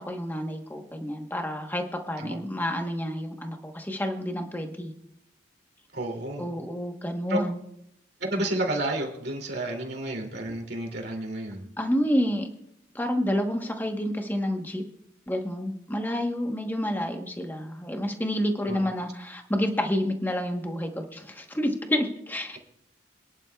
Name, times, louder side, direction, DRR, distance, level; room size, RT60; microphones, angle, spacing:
voice 1, 0.0-4.9 6.4-7.6 11.8-12.5 12.9-14.8 15.3-22.6, equal, 10° left, 4 dB, 1.1 m, -29 dB
voice 2, 5.9-6.5 7.3-7.4 8.2-11.7 18.7-18.8, right 1 dB, 55° right, 2 dB, 2.7 m, -31 dB
27.5 x 10.5 x 2.3 m, 0.75 s
head